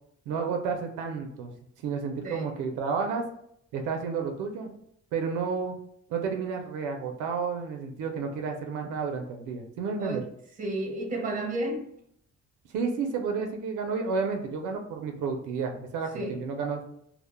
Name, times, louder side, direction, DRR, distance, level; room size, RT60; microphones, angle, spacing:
voice 1, 0.3-1.5 1.8-3.2 3.7-4.7 5.1-5.8 6.1-10.2 12.7-16.8, right 5 dB, 90° right, 3 dB, 0.5 m, -31 dB
voice 2, 10.6-11.9 16.1-16.4, right 1 dB, 25° right, 1 dB, 0.8 m, -32 dB
2.1 x 2.0 x 3.0 m, 0.72 s
cardioid pair, 90°, 30 cm